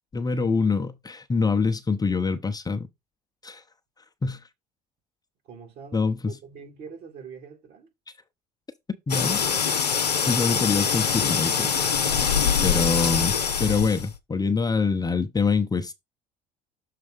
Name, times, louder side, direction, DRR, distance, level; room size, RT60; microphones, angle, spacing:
voice 1, 0.1-2.9 3.4-3.6 4.2-4.4 5.9-6.2 9.1-9.4 10.3-11.8 12.6-13.3 13.6-15.9, left 4 dB, 20° left, 0.9 m, -25 dB
voice 2, 5.4-7.9 12.8-13.6, right 5 dB, 55° right, 2.5 m, -44 dB
sound 1, 9.1-14.2, left 7 dB, 90° left, 0.7 m, -24 dB
6.7 x 3.3 x 5.0 m
hypercardioid pair, 65°, 20 cm